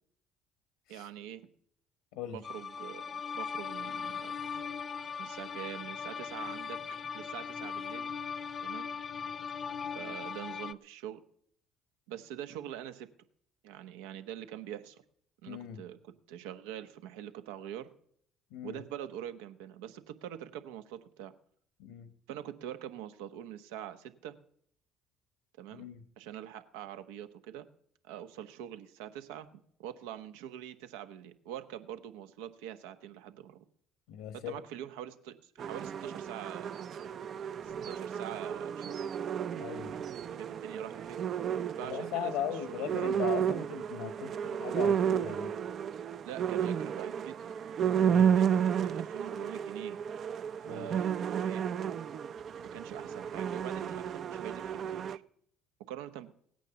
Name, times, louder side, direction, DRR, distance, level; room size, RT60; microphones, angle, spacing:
voice 1, 0.9-1.4 2.3-4.4 5.2-6.8 7.1-8.1 8.6-8.9 9.9-11.2 12.1-13.1 13.6-15.0 15.4-17.9 18.6-21.3 22.3-24.4 25.6-25.9 26.2-27.7 28.0-33.6 34.3-36.8 37.6-39.0 40.3-41.2 41.8-43.0 46.2-47.7 48.0-50.0 50.7-51.7 52.6-55.2 55.9-56.3, right 11 dB, 85° right, 10 dB, 1.1 m, -44 dB
sound 1, 2.4-10.7, left 6 dB, 40° left, 0.7 m, -39 dB
voice 2, 15.5-15.8 18.5-18.8 21.8-22.1 25.7-26.0 34.1-34.5 39.6-39.9 41.8-45.5 48.0-48.3 50.6-50.9, left 10 dB, 80° left, 11 dB, 1.0 m, -39 dB
sound 2, 35.6-55.2, right 8 dB, 55° right, 0.6 m, -32 dB
17.5 x 9.1 x 6.9 m, 0.65 s
hypercardioid pair, 60°, 0 cm